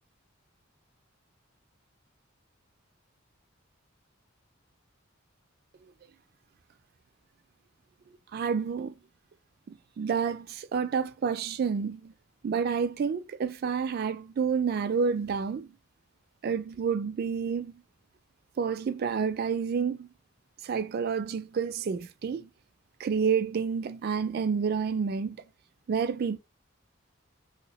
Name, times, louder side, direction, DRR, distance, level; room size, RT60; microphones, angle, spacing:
voice 1, 8.3-8.9 9.7-12.1 12.4-15.7 16.4-17.8 18.6-20.1 20.6-22.5 23.0-25.4 25.9-26.4, right 6 dB, 50° right, 0.3 m, -29 dB
3.1 x 2.8 x 2.9 m
head